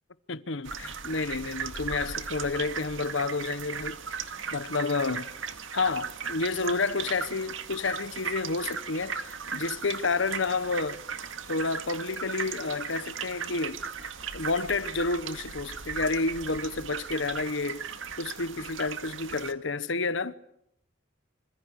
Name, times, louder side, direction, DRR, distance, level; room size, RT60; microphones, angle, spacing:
voice 1, 0.3-4.0 4.5-5.3 5.7-9.2 9.5-11.0 11.5-13.8 14.3-17.9 18.2-20.3, left 3 dB, 65° left, 1.1 m, -30 dB
sound 1, 0.6-19.5, right 6 dB, 70° right, 2.1 m, -37 dB
27.0 x 26.0 x 8.2 m
head